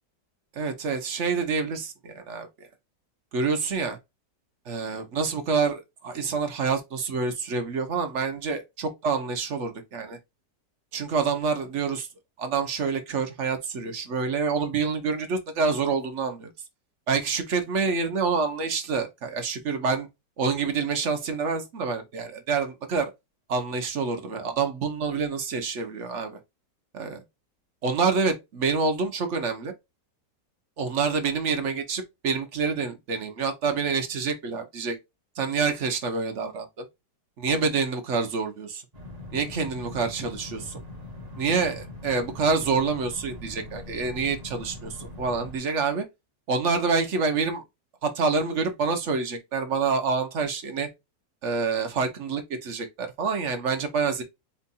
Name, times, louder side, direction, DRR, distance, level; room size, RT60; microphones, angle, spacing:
voice 1, 0.5-2.5 3.3-4.0 4.7-10.2 10.9-12.1 12.4-16.5 17.1-20.1 20.4-23.1 23.5-26.4 26.9-27.2 27.8-29.7 30.8-35.0 35.4-36.8 37.4-38.8 39.3-40.8 41.4-46.0 46.5-47.6 48.0-50.9 51.4-54.2, right 4 dB, 50° right, 1.0 m, -27 dB
sound 1, 38.9-45.6, left 1 dB, 25° right, 1.0 m, -41 dB
4.5 x 2.4 x 4.1 m
omnidirectional pair, 1.9 m